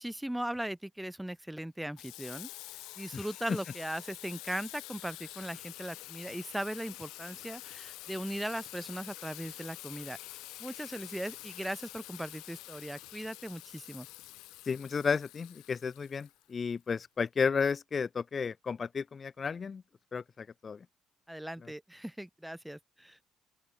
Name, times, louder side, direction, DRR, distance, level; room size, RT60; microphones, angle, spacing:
voice 1, 0.0-2.5 3.0-10.2 10.6-14.1 21.3-23.2, right 1 dB, 5° right, 1.0 m, -38 dB
Water tap faucet / Sink (filling or washing), 2.0-16.7, left 19 dB, 90° left, 0.9 m, -47 dB
voice 2, 3.1-3.6 14.7-19.8 20.1-20.8, left 5 dB, 40° left, 0.7 m, -33 dB
open air
supercardioid pair, 75°, 0 cm